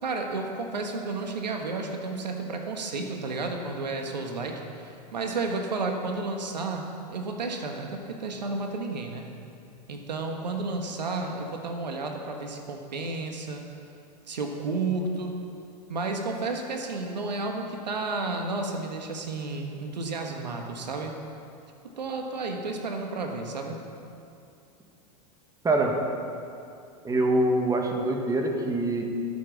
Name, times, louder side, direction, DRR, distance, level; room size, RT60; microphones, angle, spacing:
voice 1, 0.0-6.8 7.1-9.3 9.9-13.6 14.3-15.4 15.9-21.1 22.0-23.8, right 3 dB, 90° right, 3 dB, 1.5 m, -32 dB
voice 2, 27.0-29.0, right 2 dB, 15° right, 2 dB, 1.7 m, -24 dB
13.0 x 7.4 x 7.2 m, 2.5 s
hypercardioid pair, 100°, 21 cm